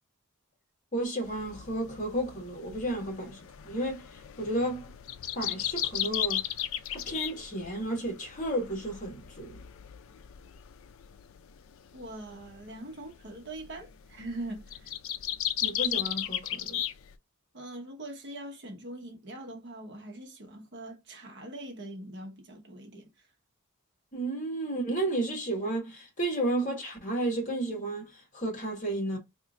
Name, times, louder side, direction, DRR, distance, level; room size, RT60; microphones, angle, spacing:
voice 1, 0.9-3.4 3.6-4.9 5.3-6.4 6.9-9.6 15.6-16.8 24.1-29.2, right 1 dB, 35° left, 1.4 m, -32 dB
sound 1, 1.2-17.1, left 11 dB, 60° left, 0.4 m, -36 dB
voice 2, 11.9-14.9 17.5-23.3, right 1 dB, 50° right, 0.9 m, -42 dB
2.9 x 2.5 x 3.6 m
head